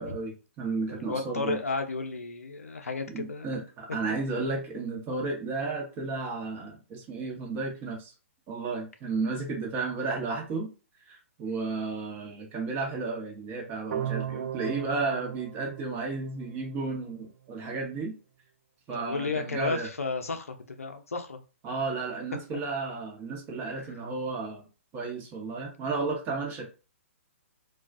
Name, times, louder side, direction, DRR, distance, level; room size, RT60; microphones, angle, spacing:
voice 1, 0.0-1.6 3.1-8.1 8.5-10.7 11.1-18.1 18.9-19.9 21.6-24.6 24.9-26.6, right 3 dB, 25° right, 0 dB, 0.9 m, -33 dB
voice 2, 0.9-3.6 18.9-21.4 22.5-22.6 23.7-23.9, left 3 dB, 85° left, 5 dB, 0.6 m, -33 dB
sound 1, 13.9-16.9, right 10 dB, 60° right, 0.3 m, -36 dB
2.3 x 2.3 x 2.5 m, 0.33 s
hypercardioid pair, 130°, 8 cm